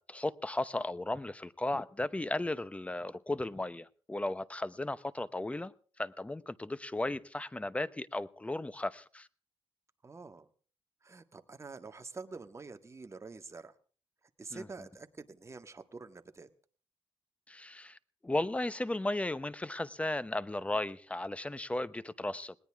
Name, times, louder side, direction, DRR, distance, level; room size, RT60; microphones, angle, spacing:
voice 1, 0.0-5.7 6.0-9.3 14.5-14.7 17.5-18.0 18.2-22.6, left 2 dB, 15° left, 0.9 m, -35 dB
voice 2, 10.0-10.5 11.0-13.7 14.4-16.5, right 4 dB, 30° right, 1.7 m, -47 dB
20.0 x 19.5 x 3.6 m
cardioid pair, 100°, 10 cm